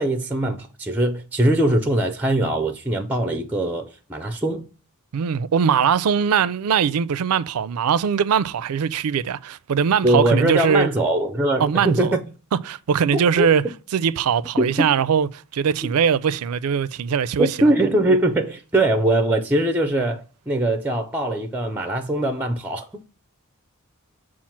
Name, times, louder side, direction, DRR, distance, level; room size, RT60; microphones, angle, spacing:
voice 1, 0.0-4.6 10.0-12.2 13.1-13.5 14.6-14.9 17.4-23.0, right 1 dB, 10° right, 0.4 m, -21 dB
voice 2, 5.1-10.9 11.6-12.2 12.7-13.6 13.9-17.6, right 7 dB, 75° right, 0.4 m, -21 dB
7.3 x 2.4 x 5.6 m
head